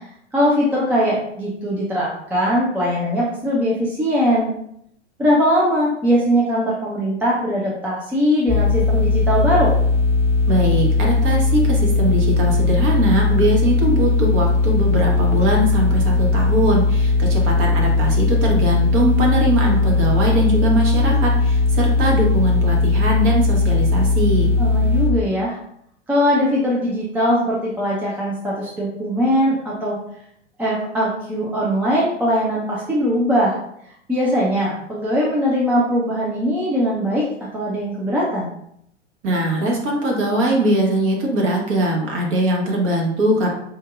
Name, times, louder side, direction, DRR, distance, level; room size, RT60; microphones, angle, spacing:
voice 1, 0.3-4.5 5.2-9.7 24.6-25.6 26.1-30.0 30.6-33.6 34.1-37.3 37.5-38.5, equal, 5° right, -5 dB, 0.3 m, -20 dB
sound 1, 8.5-25.1, left 3 dB, 25° left, 0.7 m, -18 dB
voice 2, 10.5-24.5 39.2-43.5, right 1 dB, 35° right, -1 dB, 1.1 m, -21 dB
4.5 x 2.6 x 2.4 m, 0.74 s
figure-of-eight pair, 100°, 36 cm